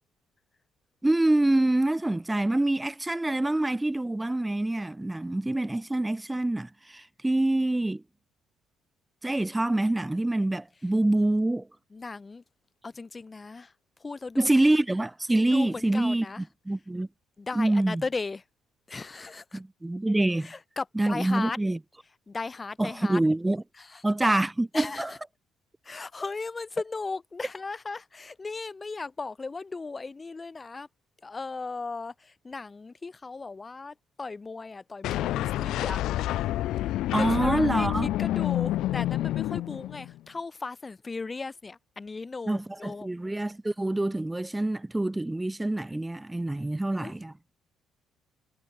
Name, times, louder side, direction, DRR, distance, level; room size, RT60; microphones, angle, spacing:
voice 1, 1.0-8.0 9.2-11.7 14.4-17.1 17.5-18.0 19.5-20.5 20.9-21.8 22.8-23.6 24.0-25.1 37.1-38.1 42.5-47.3, right 1 dB, 15° right, 1.1 m, -26 dB
voice 2, 11.9-12.4 12.8-13.7 14.0-14.5 15.5-16.4 17.4-18.4 18.9-19.6 20.4-21.6 22.3-23.2 23.8-24.0 24.7-25.2 25.8-30.9 31.2-36.0 37.1-37.9 38.2-43.1 47.0-47.2, left 3 dB, 30° left, 1.3 m, -36 dB
sound 1, 35.0-40.2, left 14 dB, 65° left, 0.8 m, -28 dB
hypercardioid pair, 50°, 0 cm